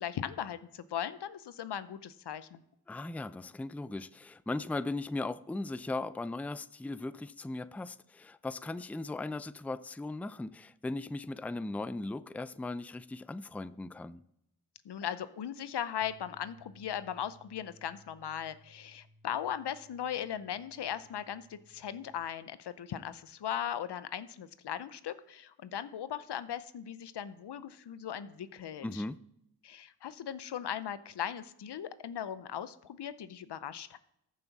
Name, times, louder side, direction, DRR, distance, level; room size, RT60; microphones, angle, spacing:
voice 1, 0.0-2.6 14.8-29.0 29.6-34.0, left 9 dB, 80° left, 0.7 m, -38 dB
voice 2, 2.9-14.2 28.8-29.2, left 2 dB, 5° left, 0.4 m, -38 dB
sound 1, 16.0-22.3, left 1 dB, 15° right, 0.8 m, -61 dB
14.5 x 7.3 x 4.1 m
cardioid pair, 40°, 40 cm